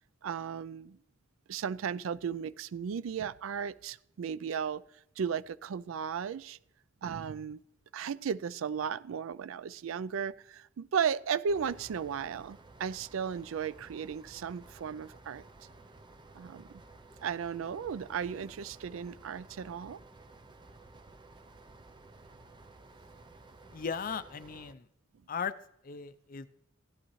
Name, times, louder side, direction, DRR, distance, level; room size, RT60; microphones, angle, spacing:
voice 1, 0.2-1.0 1.5-4.8 5.2-6.6 7.0-7.6 7.9-15.4 16.3-16.7 17.2-20.0, right 7 dB, 85° right, 18 dB, 0.4 m, -35 dB
sound 1, 11.5-24.7, right 2 dB, 25° right, 0.5 m, -54 dB
voice 2, 23.7-24.8 25.3-25.5 25.8-26.5, left 6 dB, 45° left, 13 dB, 0.5 m, -37 dB
15.0 x 11.5 x 3.1 m, 0.79 s
head